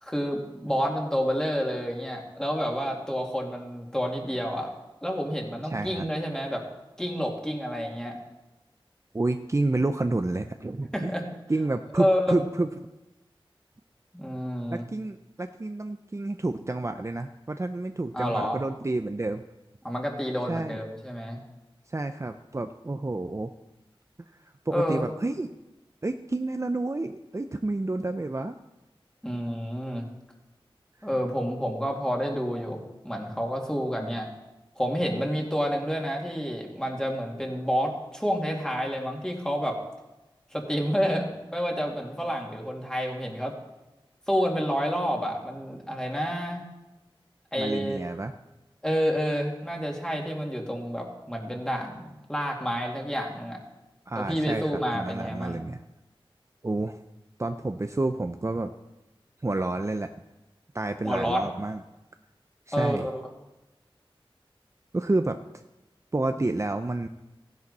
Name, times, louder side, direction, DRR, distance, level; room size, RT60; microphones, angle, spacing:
voice 1, 0.0-4.7 5.0-6.6 7.0-8.2 10.9-11.2 12.0-12.4 14.1-14.9 18.1-18.6 19.8-21.4 24.7-25.0 29.2-30.1 31.0-34.3 34.8-39.8 40.5-43.5 44.3-46.6 47.5-48.0 48.8-53.6 54.2-55.6 61.0-61.5 62.7-63.2, equal, 5° left, 0 dB, 2.6 m, -29 dB
voice 2, 5.7-6.0 9.1-11.1 11.5-12.7 14.7-19.4 20.5-20.8 21.9-23.5 24.4-25.5 26.0-28.6 31.0-31.1 34.0-34.2 47.5-48.3 54.1-55.8 56.6-57.0 57.4-58.7 59.4-60.1 60.7-61.8 62.7-63.1 64.9-65.4 66.1-67.1, right 2 dB, 30° right, 7 dB, 0.6 m, -29 dB
15.5 x 10.5 x 4.2 m, 1.0 s
wide cardioid pair, 55°, 9 cm